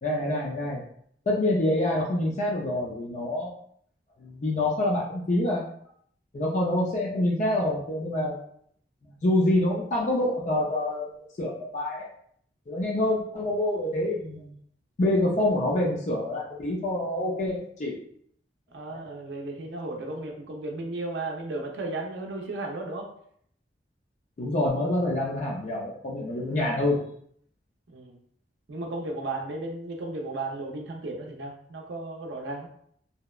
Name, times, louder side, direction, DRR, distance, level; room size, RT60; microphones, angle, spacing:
voice 1, 0.0-0.8 1.3-3.5 4.2-5.6 6.3-8.4 9.2-11.1 11.4-12.0 12.7-14.5 15.0-18.0 18.9-19.0 24.4-27.0, left 1 dB, 40° left, -3 dB, 0.4 m, -26 dB
voice 2, 18.7-23.1 27.9-28.2 28.7-32.7, right 2 dB, 80° right, 1 dB, 0.4 m, -34 dB
2.8 x 2.0 x 2.3 m, 0.66 s
head